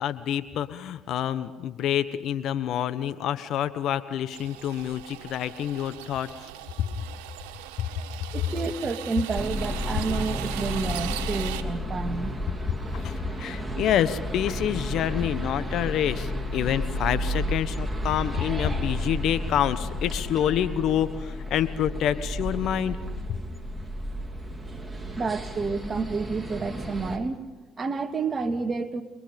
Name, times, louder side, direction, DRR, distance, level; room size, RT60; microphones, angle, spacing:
voice 1, 0.0-6.3 6.8-6.9 7.8-7.9 12.9-23.0 23.3-23.4, left 10 dB, 65° left, 13 dB, 1.2 m, -27 dB
sound 1, 4.3-11.6, right 13 dB, 90° right, 1.7 m, -39 dB
voice 2, 8.3-12.3 25.2-29.0, right 4 dB, 35° right, 6 dB, 2.2 m, -30 dB
sound 2, 9.4-27.2, left 1 dB, 10° right, 3.4 m, -32 dB
28.5 x 22.5 x 5.4 m, 1.1 s
supercardioid pair, 70°, 0 cm